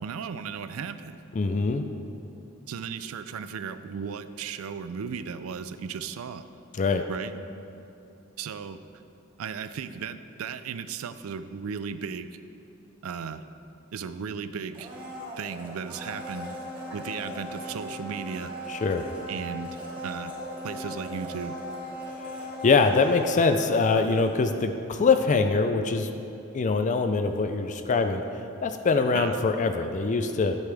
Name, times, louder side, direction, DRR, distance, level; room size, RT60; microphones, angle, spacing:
voice 1, 0.0-1.2 2.7-6.5 7.1-7.3 8.4-8.8 9.4-12.4 13.0-13.4 13.9-14.9 15.4-16.5 16.9-18.5 19.3-20.3 20.6-21.6 29.1-29.4, right 6 dB, 70° right, 12 dB, 0.4 m, -35 dB
voice 2, 1.3-1.8 6.8-7.0 18.7-19.1 22.6-26.1 26.5-28.2 28.6-30.6, left 4 dB, 35° left, 7 dB, 0.4 m, -23 dB
Domestic sounds home sounds, 14.7-24.7 25.0-25.1, equal, 25° right, 1.9 m, -38 dB
11.0 x 8.0 x 3.4 m, 2.8 s
head